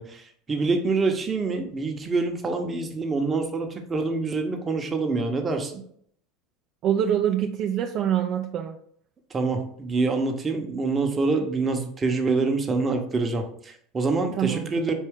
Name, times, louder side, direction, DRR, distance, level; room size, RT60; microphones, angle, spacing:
voice 1, 0.0-5.8 9.3-14.9, right 3 dB, 25° right, 4 dB, 0.8 m, -26 dB
voice 2, 6.8-8.8 14.4-14.7, right 9 dB, 50° right, 3 dB, 0.3 m, -25 dB
4.3 x 2.7 x 3.5 m, 0.65 s
hypercardioid pair, 95°, 0 cm